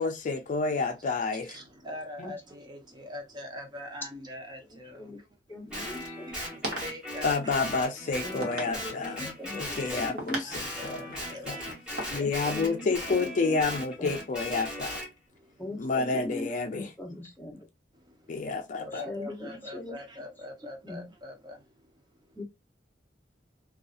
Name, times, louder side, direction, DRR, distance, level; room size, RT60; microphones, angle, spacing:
voice 1, 0.0-1.6 7.2-11.0 11.5-11.6 12.1-15.0 15.8-16.9 18.3-19.0, left 4 dB, 45° left, 0.4 m, -29 dB
voice 2, 1.3-5.8 6.3-7.5 9.1-10.0 10.4-12.5 15.3-15.6 15.9-16.0 17.5-17.6 17.9-22.4, left 1 dB, 25° right, 0.6 m, -44 dB
voice 3, 4.7-5.2 5.5-6.3 8.2-9.6 9.9-10.7 12.2-13.6 14.0-14.2 15.6-17.7 18.9-20.0 20.8-21.0 22.3-22.4, left 1 dB, 10° left, 0.7 m, -40 dB
Guitar, 5.7-10.2 10.5-15.1, equal, 5° right, 1.3 m, -38 dB
sound 1, 5.7-12.1, right 1 dB, 55° right, 0.9 m, -41 dB
2.7 x 2.3 x 2.4 m
head